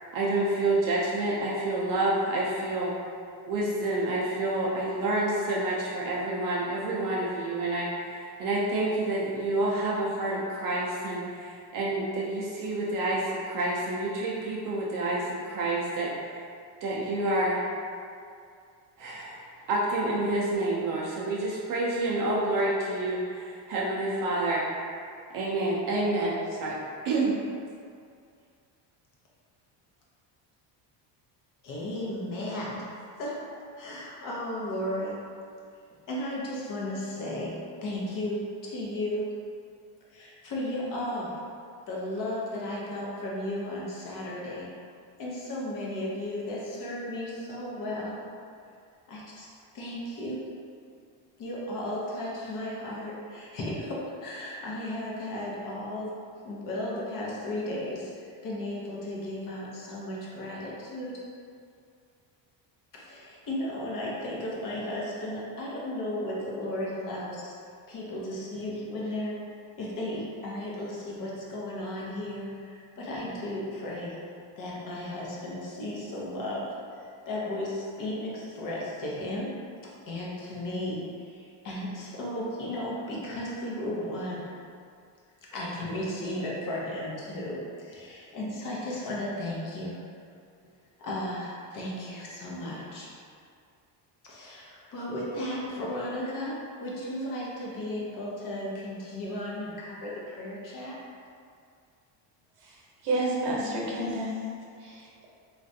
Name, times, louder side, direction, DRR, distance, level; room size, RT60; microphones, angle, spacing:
voice 1, 0.1-2.9 3.5-16.4 16.8-17.7 19.0-19.4 19.7-24.6 25.3-27.4, right 2 dB, 45° right, -5 dB, 0.4 m, -28 dB
voice 2, 31.6-32.9 33.2-35.2 36.1-39.3 40.1-41.4 41.9-44.7 45.2-48.2 49.1-49.5 49.7-50.5 51.4-56.2 56.4-61.2 62.9-67.5 67.9-74.2 74.6-79.6 79.8-84.5 85.5-90.0 91.0-93.2 94.2-101.0, left 1 dB, 45° left, -5 dB, 0.7 m, -35 dB
voice 3, 102.6-104.4 104.8-105.3, right 1 dB, 75° right, -4 dB, 0.9 m, -31 dB
3.2 x 2.4 x 2.6 m, 2.3 s
cardioid pair, 150°, 47 cm